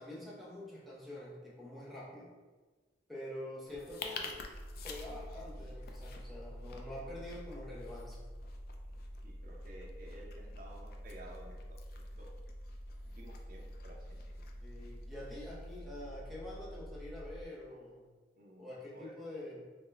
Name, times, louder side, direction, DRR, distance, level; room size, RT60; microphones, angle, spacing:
voice 1, 0.0-2.3 3.1-4.5 4.8-8.3 14.6-18.1 18.6-19.7, left 1 dB, ahead, -6 dB, 0.6 m, -46 dB
sound 1, 3.7-15.8, left 5 dB, 55° left, 0.3 m, -51 dB
sound 2, 4.5-17.5, equal, 85° left, 1.0 m, -47 dB
voice 2, 9.2-12.3 13.2-14.0 14.4-14.5 18.4-19.2, right 1 dB, 50° right, -2 dB, 0.6 m, -54 dB
3.5 x 2.1 x 3.2 m, 1.4 s
head